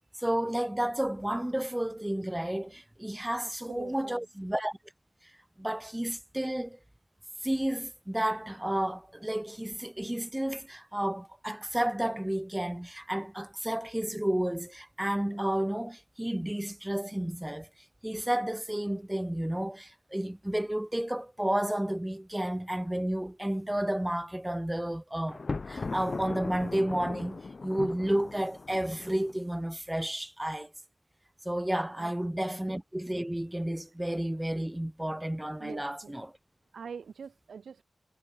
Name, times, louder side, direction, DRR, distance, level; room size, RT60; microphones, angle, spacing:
voice 1, 0.2-4.8 5.6-6.8 7.4-17.7 18.0-30.7 31.4-36.3, right 1 dB, 10° right, 6.3 m, -31 dB
voice 2, 3.4-4.3 32.0-32.1 35.6-36.1 36.7-37.8, right 6 dB, 90° right, 5.8 m, -44 dB
Thunder, 25.3-29.4, left 4 dB, 55° left, 4.3 m, -38 dB
cardioid pair, 45°, 0 cm